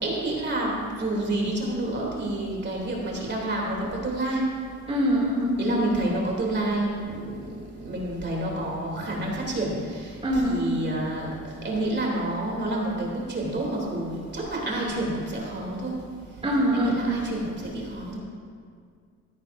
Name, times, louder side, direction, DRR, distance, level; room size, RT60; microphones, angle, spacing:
voice 1, 0.0-4.5 5.6-10.1 10.4-11.3 11.6-15.9 16.7-18.2, right 1 dB, 35° right, -2 dB, 3.1 m, -29 dB
voice 2, 4.9-5.8 10.2-10.6 16.4-17.0, equal, 20° right, -5 dB, 2.6 m, -23 dB
15.0 x 13.5 x 2.7 m, 2.1 s
cardioid pair, 90°, 30 cm